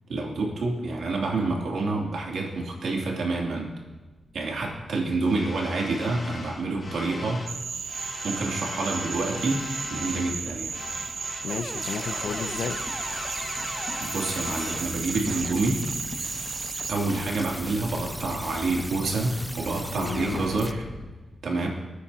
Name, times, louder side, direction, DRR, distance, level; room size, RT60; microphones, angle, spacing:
voice 1, 0.1-3.7 4.3-7.5 8.2-9.6 9.9-10.8 14.0-15.8 16.9-20.8 21.4-21.7, right 3 dB, 75° right, -2 dB, 2.9 m, -28 dB
sound 1, 4.0-21.1, left 2 dB, 40° left, 1.7 m, -40 dB
Cricket / Frog, 7.5-17.0, right 6 dB, 60° right, 0.6 m, -34 dB
voice 2, 11.4-12.8 20.0-20.5 21.5-21.7, left 6 dB, 75° left, 10 dB, 0.7 m, -33 dB
sound 2, 11.5-20.7, equal, 5° right, 0.4 m, -38 dB
27.5 x 10.0 x 2.9 m, 1.2 s
wide cardioid pair, 135°, 0 cm